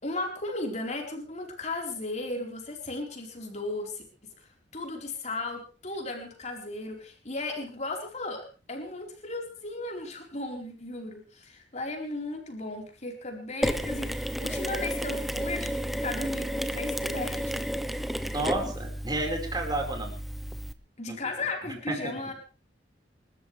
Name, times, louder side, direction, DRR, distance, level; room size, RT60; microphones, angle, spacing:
voice 1, 0.0-17.6 21.0-22.3, left 2 dB, 40° left, 2 dB, 4.4 m, -36 dB
Mechanisms, 13.6-20.7, equal, ahead, 0.8 m, -32 dB
voice 2, 18.3-20.2 21.1-21.2 21.9-22.1, right 2 dB, 20° right, 2 dB, 4.8 m, -31 dB
29.0 x 13.0 x 3.4 m, 0.35 s
head